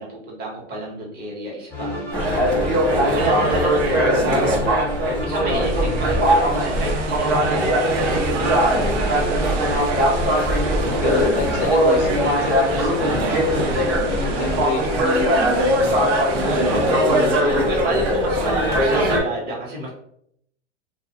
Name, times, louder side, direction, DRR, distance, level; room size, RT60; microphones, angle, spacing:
voice 1, 0.0-2.5 2.9-4.7 5.0-9.2 10.8-11.4 13.5-13.9 16.4-19.9, equal, 25° right, -3 dB, 1.0 m, -29 dB
sound 1, 1.7-14.7, left 1 dB, 5° left, 0.7 m, -31 dB
sound 2, 2.1-19.2, right 1 dB, 55° right, 0.9 m, -20 dB
voice 2, 5.5-6.2 8.5-8.9 11.0-13.3 13.5-16.1 16.8-18.1, left 5 dB, 35° left, 5 dB, 0.4 m, -30 dB
sound 3, 5.6-17.4, right 6 dB, 80° right, 0.5 m, -34 dB
2.3 x 2.1 x 2.8 m, 0.70 s
hypercardioid pair, 120°, 36 cm